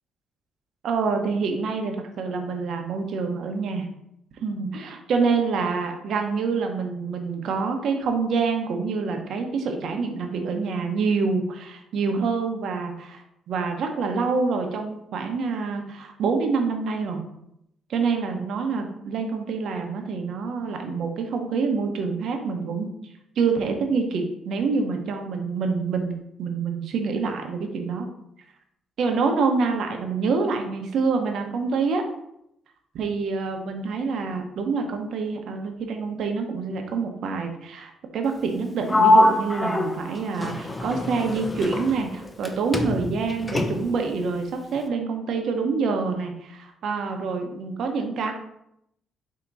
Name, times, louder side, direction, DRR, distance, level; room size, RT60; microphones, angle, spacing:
voice 1, 0.8-3.9 4.4-17.2 17.9-22.9 23.4-28.1 29.0-32.0 32.9-48.3, right 4 dB, 70° right, 4 dB, 0.8 m, -26 dB
Sliding door, 38.9-42.5 42.7-44.1, left 1 dB, 20° left, 0.5 m, -23 dB
4.6 x 2.8 x 3.9 m, 0.78 s
cardioid pair, 90°, 0 cm